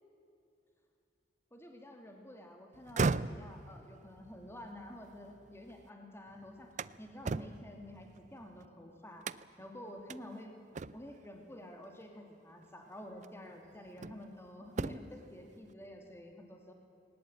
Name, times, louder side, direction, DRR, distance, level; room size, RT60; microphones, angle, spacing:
voice 1, 1.5-9.3 9.6-10.5 10.9-16.7, left 1 dB, 15° left, 3 dB, 2.6 m, -50 dB
sound 1, 2.7-5.9 6.3-8.7 9.2-9.7 10.1-10.2 10.7-11.3 12.5-12.6 13.2-14.3 14.7-15.3, right 4 dB, 45° right, 0.5 m, -38 dB
20.0 x 19.0 x 8.9 m, 2.7 s
head